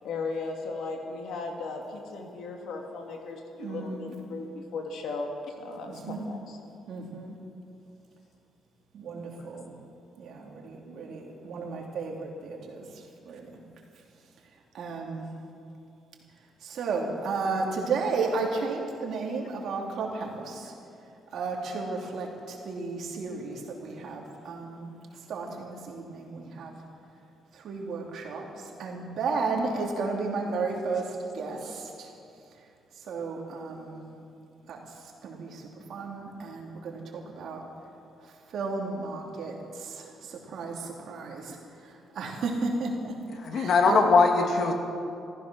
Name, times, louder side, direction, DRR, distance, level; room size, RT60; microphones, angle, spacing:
voice 1, 0.0-5.3 5.6-6.6, left 3 dB, 80° left, 2 dB, 2.1 m, -36 dB
voice 2, 3.6-4.1 5.9-6.2 6.9-7.3 8.9-9.7 10.2-13.6 14.7-15.3 16.6-20.7 21.3-26.7 27.5-32.1 32.9-34.0 34.6-37.6 38.2-43.1 43.5-44.0, right 4 dB, 70° right, 0 dB, 2.7 m, -34 dB
voice 3, 43.5-44.7, left 4 dB, 65° left, 4 dB, 1.9 m, -21 dB
14.5 x 14.5 x 6.2 m, 2.6 s
cardioid pair, 90°, 0 cm